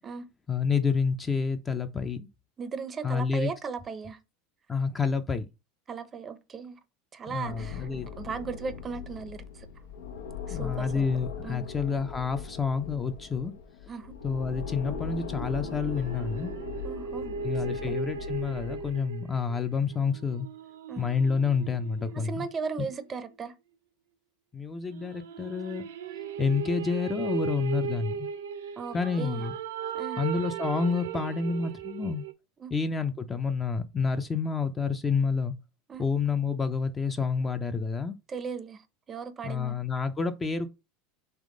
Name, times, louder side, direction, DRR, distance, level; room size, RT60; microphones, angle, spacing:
voice 1, 0.5-2.3 3.0-3.5 4.7-5.5 7.3-8.1 10.5-13.5 14.2-16.5 17.4-20.5 21.0-22.5 24.5-25.9 26.4-28.3 28.9-29.5 30.2-32.2 32.7-35.5 36.0-38.2 39.4-40.7, left 5 dB, 20° left, 0.5 m, -29 dB
voice 2, 2.6-4.2 5.9-6.8 7.1-7.9 8.2-9.7 10.5-11.1 11.4-11.6 13.9-14.1 16.8-17.4 17.7-18.0 20.9-21.1 22.1-23.5 28.8-29.4 29.9-30.2 32.6-32.7 35.9-36.0 38.3-38.8 39.1-39.7, right 5 dB, 30° right, 0.6 m, -37 dB
sound 1, 7.4-19.0, left 7 dB, 85° left, 0.7 m, -39 dB
sound 2, 15.4-23.1 24.9-32.3, right 6 dB, 90° right, 0.6 m, -37 dB
3.5 x 3.2 x 3.7 m
supercardioid pair, 105°, 0 cm